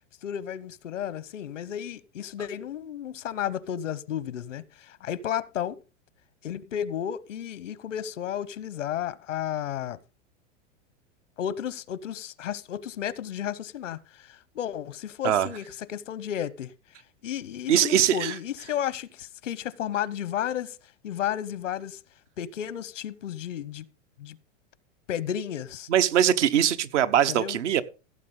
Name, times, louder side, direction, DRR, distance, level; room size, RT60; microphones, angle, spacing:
voice 1, 0.2-5.8 6.4-10.0 11.4-15.6 15.9-16.7 17.2-20.8 21.0-22.0 22.4-23.8 24.2-24.4 25.1-25.9 27.3-27.6, left 10 dB, 90° left, 0.9 m, -33 dB
voice 2, 17.7-18.3 25.9-27.8, right 10 dB, 75° right, 1.1 m, -22 dB
16.0 x 7.7 x 3.8 m
hypercardioid pair, 110°, 36 cm